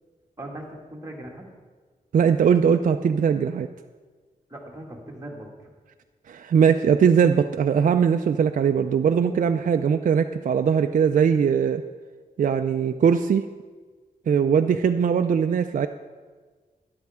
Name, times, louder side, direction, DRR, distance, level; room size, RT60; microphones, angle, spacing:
voice 1, 0.4-1.4 4.5-5.7, right 1 dB, 20° right, -1 dB, 2.0 m, -39 dB
voice 2, 2.1-3.7 6.3-11.8 12.4-13.4 14.3-15.9, right 7 dB, 60° right, 7 dB, 0.4 m, -20 dB
12.5 x 10.5 x 3.6 m, 1.4 s
wide cardioid pair, 95°, 15 cm